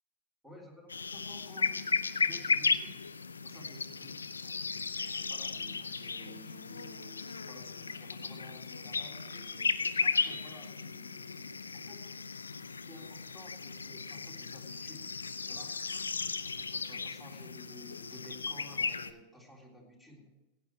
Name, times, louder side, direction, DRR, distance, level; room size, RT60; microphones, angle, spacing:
voice 1, 0.4-1.9 2.2-3.0 3.4-4.1 4.4-4.5 5.0-9.7 10.0-12.1 12.9-15.1 15.5-15.7 16.0-20.3, equal, 5° right, -1 dB, 3.5 m, -54 dB
sound 1, 0.9-19.1, left 4 dB, 75° left, 0.5 m, -35 dB
16.5 x 9.0 x 4.6 m, 1.1 s
figure-of-eight pair, 90°, 0 cm